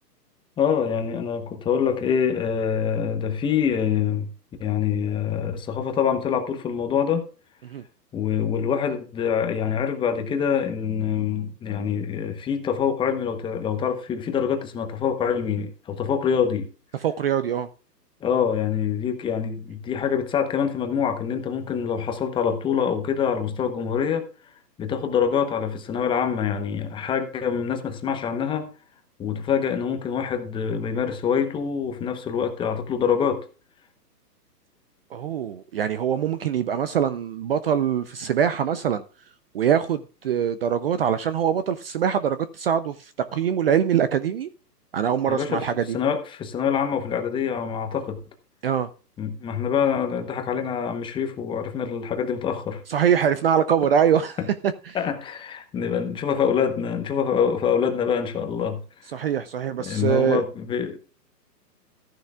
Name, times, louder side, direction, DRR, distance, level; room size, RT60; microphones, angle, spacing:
voice 1, 0.6-4.3 4.6-7.3 8.1-16.7 18.2-24.3 24.8-28.7 29.2-33.5 45.3-45.7 45.9-48.2 49.2-52.8 54.9-58.8 59.9-61.0, left 7 dB, 10° left, 0.9 m, -25 dB
voice 2, 17.0-17.7 35.1-39.0 39.5-44.5 44.9-46.0 48.6-48.9 52.9-54.4 54.9-55.0 59.1-60.4, right 8 dB, 35° right, 0.6 m, -23 dB
14.5 x 10.5 x 2.3 m
hypercardioid pair, 145°, 49 cm